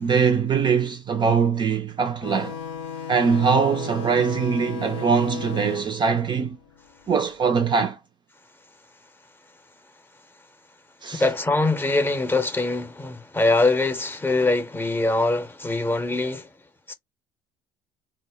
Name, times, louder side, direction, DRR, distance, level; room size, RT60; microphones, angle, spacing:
voice 1, 0.0-2.6 3.1-6.6 7.1-8.0 11.0-11.2, right 6 dB, 30° right, 0.3 m, -22 dB
sound 1, 2.2-7.4, left 8 dB, 70° left, 0.4 m, -36 dB
voice 2, 11.1-16.5 16.9-17.0, left 2 dB, 15° left, 0.6 m, -23 dB
2.1 x 2.0 x 3.3 m
figure-of-eight pair, 60°, 16 cm